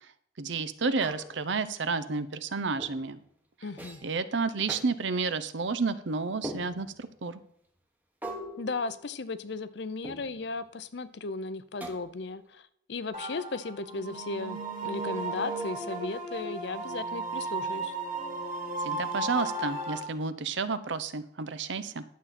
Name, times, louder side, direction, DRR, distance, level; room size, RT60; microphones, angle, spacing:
voice 1, 0.4-3.2 4.0-7.4 18.8-22.0, right 4 dB, 70° right, 14 dB, 0.7 m, -31 dB
sound 1, 1.0-1.6 2.8-3.1 3.8-4.2 4.7-4.9 6.4-7.1 8.2-9.5 10.0-10.6 11.8-12.4, equal, 10° right, 1.0 m, -42 dB
voice 2, 3.6-4.0 8.6-17.9, left 3 dB, 60° left, 14 dB, 0.6 m, -36 dB
sound 2, 13.1-20.0, right 2 dB, 40° right, 1.9 m, -35 dB
11.5 x 7.2 x 4.2 m, 0.70 s
head